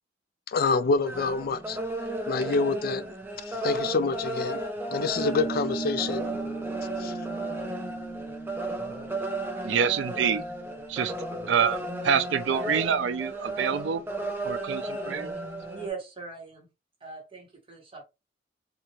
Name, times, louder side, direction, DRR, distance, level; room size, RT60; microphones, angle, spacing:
voice 1, 0.5-1.8 2.3-3.1 3.5-4.6 4.9-6.3 7.0-7.1, left 4 dB, 55° left, 0.4 m, -27 dB
sound 1, 0.8-15.9, right 1 dB, 10° right, 0.5 m, -34 dB
sound 2, 5.2-12.1, right 3 dB, 75° left, 1.2 m, -38 dB
voice 2, 9.6-10.4 10.9-11.1 11.5-14.0 14.4-15.3, right 7 dB, 75° right, 0.4 m, -26 dB
voice 3, 15.7-16.7 17.0-18.0, right 5 dB, 30° right, 1.1 m, -40 dB
2.7 x 2.4 x 2.9 m
head